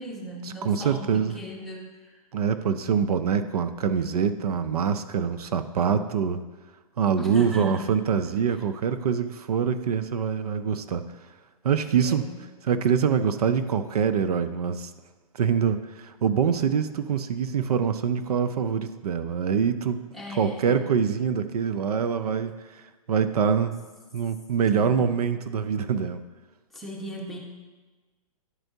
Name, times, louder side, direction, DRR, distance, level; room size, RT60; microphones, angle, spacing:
voice 1, 0.0-2.2 7.2-7.9 8.2-8.6 12.0-12.4 20.1-20.9 24.7-25.0 26.7-27.4, equal, ahead, -4 dB, 1.2 m, -37 dB
voice 2, 0.6-1.3 2.3-6.4 7.0-11.0 11.6-12.3 12.7-14.9 15.3-20.0 20.3-22.8 23.1-23.7 24.1-26.2, right 7 dB, 80° right, 10 dB, 0.5 m, -25 dB
11.0 x 4.4 x 2.7 m, 1.3 s
hypercardioid pair, 135°, 19 cm